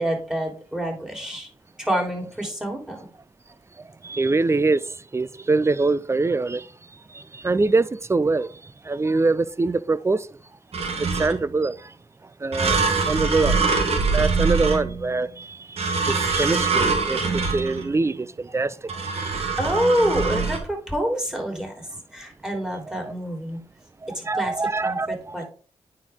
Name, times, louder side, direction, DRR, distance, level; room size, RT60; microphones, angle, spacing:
voice 1, 0.0-1.5 1.8-3.1 19.6-23.6 24.1-25.5, equal, 5° right, 3.5 m, -27 dB
voice 2, 3.8-6.7 7.1-10.3 11.0-11.9 12.4-12.8 13.1-13.7 14.1-19.4 22.9-23.1 24.2-25.3, right 3 dB, 25° right, 0.5 m, -24 dB
sound 1, 10.7-11.6 12.5-15.2 15.8-18.0 18.9-20.6, right 4 dB, 60° right, 1.6 m, -24 dB
9.3 x 4.5 x 3.6 m
supercardioid pair, 50°, 12 cm